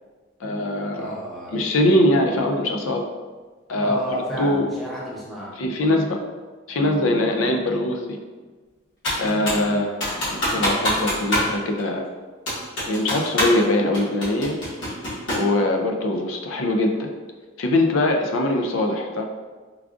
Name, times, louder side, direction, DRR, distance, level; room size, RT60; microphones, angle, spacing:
voice 1, 0.4-1.1 1.5-3.0 3.7-4.0 4.4-4.7 5.6-6.2 6.7-8.2 9.2-9.9 10.5-12.1 12.9-14.6 15.3-17.1 17.6-19.2, left 1 dB, 90° left, 3 dB, 0.4 m, -22 dB
voice 2, 0.9-1.6 3.7-5.6 9.6-9.9, equal, ahead, -8 dB, 0.7 m, -31 dB
Computer keyboard, 9.0-9.7 10.0-11.5 11.8-11.9 12.5-13.6 13.9-15.5, equal, 75° left, 1.3 m, -24 dB
4.6 x 2.4 x 2.5 m, 1.4 s
head